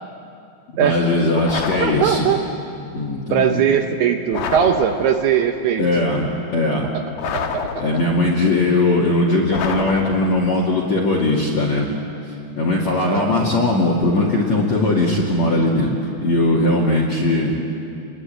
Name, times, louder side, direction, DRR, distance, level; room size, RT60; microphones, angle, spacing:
voice 1, 0.7-2.3 2.9-3.7 5.8-6.9 7.8-11.9 12.6-17.5, left 2 dB, 45° left, -3 dB, 3.1 m, -19 dB
sound 1, 1.4-2.5 4.3-5.4 7.2-8.3 9.5-10.6, left 6 dB, 65° left, 1.9 m, -28 dB
voice 2, 1.8-2.4 3.3-5.9 7.3-7.9 13.0-13.5, right 8 dB, 70° right, 5 dB, 2.7 m, -20 dB
28.5 x 22.5 x 9.1 m, 2.6 s
omnidirectional pair, 5.3 m